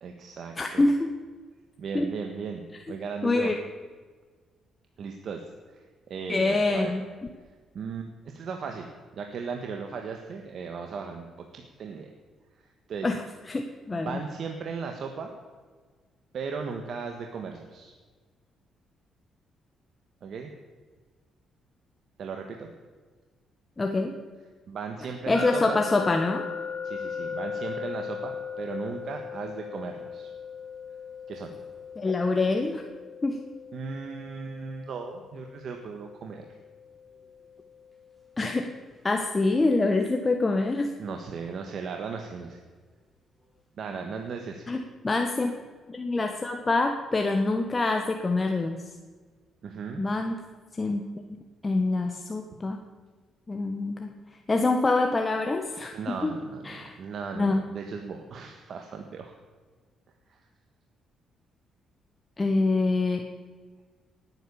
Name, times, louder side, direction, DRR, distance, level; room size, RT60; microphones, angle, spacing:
voice 1, 0.0-0.9 1.8-3.5 5.0-5.4 5.7-5.8 6.1-6.9 7.7-12.1 12.6-13.1 13.9-15.3 16.3-17.9 20.2-20.5 22.2-22.7 24.7-25.8 26.8-30.3 31.3-31.6 33.7-36.5 41.0-42.6 43.8-44.7 49.6-50.1 55.9-59.3 60.3-60.4, right 5 dB, 60° right, 4 dB, 1.5 m, -37 dB
voice 2, 0.6-1.0 1.9-2.1 3.2-3.6 6.3-7.0 13.0-13.2 13.5-14.2 23.8-24.1 25.3-26.5 32.0-32.8 33.2-33.4 38.4-38.7 39.0-40.9 44.7-45.5 45.9-48.8 50.0-50.4 50.8-51.0 51.6-52.8 53.5-54.1 54.5-56.3 56.6-57.0 57.3-57.6 62.4-63.2, left 3 dB, 25° left, 4 dB, 1.2 m, -25 dB
sound 1, 25.3-38.2, left 6 dB, 5° right, 4.9 m, -38 dB
18.5 x 9.1 x 7.0 m, 1.5 s
cardioid pair, 90°, 0 cm